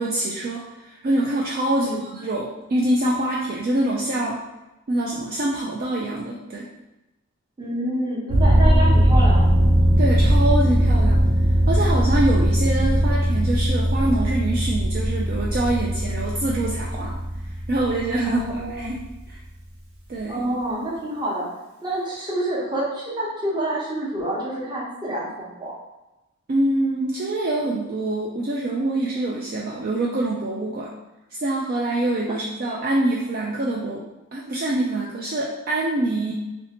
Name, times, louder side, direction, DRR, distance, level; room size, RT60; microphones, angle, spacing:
voice 1, 0.0-4.4 4.9-6.7 10.0-11.2 11.7-17.2 17.7-19.0 19.3-19.4 20.1-20.4 26.5-30.9 31.3-34.0 34.3-36.3, right 1 dB, 40° right, -3 dB, 0.3 m, -25 dB
voice 2, 1.7-2.1 7.6-9.5 18.2-18.9 20.3-25.7, right 1 dB, 20° right, -5 dB, 0.8 m, -28 dB
sound 1, 8.3-19.1, equal, 70° right, 0.7 m, -19 dB
3.1 x 2.7 x 2.9 m, 1.0 s
head